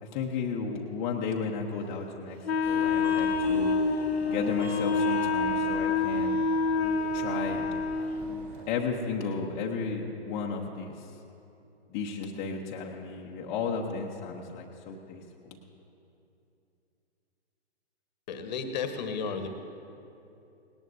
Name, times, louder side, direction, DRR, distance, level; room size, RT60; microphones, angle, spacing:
voice 1, 0.0-2.4 2.6-3.7 4.2-6.4 7.1-7.7 8.7-11.0 11.9-15.6, left 5 dB, 20° left, -2 dB, 0.8 m, -33 dB
Wind instrument woodwind instrument, 2.5-8.3, left 4 dB, 70° left, 0.7 m, -27 dB
Subway metro underground, 2.6-8.6, right 1 dB, 20° right, 3.2 m, -44 dB
voice 2, 18.3-19.5, left 5 dB, 45° left, 8 dB, 1.2 m, -33 dB
18.5 x 18.0 x 2.7 m, 2.8 s
figure-of-eight pair, 120°, 32 cm